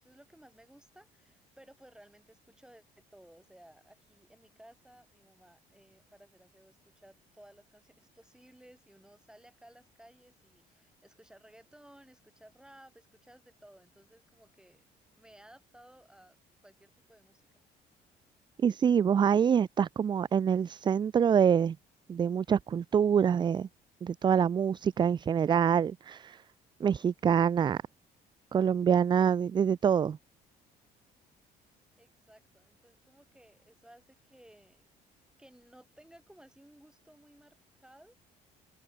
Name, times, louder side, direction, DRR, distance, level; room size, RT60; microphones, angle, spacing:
voice 1, 0.0-14.8 15.2-16.4 16.6-17.4 32.0-34.9 35.4-38.2, right 1 dB, 5° right, 6.0 m, -58 dB
voice 2, 18.6-21.8 22.1-23.7 24.0-26.4 26.8-27.8 28.5-30.2, right 7 dB, 25° right, 0.3 m, -25 dB
open air
cardioid pair, 110°, 17 cm